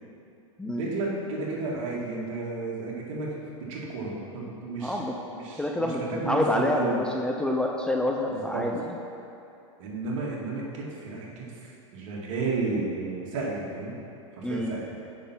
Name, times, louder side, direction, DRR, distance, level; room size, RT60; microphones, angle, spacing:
voice 1, 0.7-3.4 3.7-5.0 5.3-7.0 8.3-8.7 9.8-14.0 14.3-14.9, right 3 dB, 65° right, -3 dB, 2.1 m, -32 dB
voice 2, 4.8-5.2 5.6-8.9 14.4-14.7, left 1 dB, 5° left, 1 dB, 0.5 m, -27 dB
7.2 x 6.0 x 5.8 m, 2.7 s
hypercardioid pair, 120°, 17 cm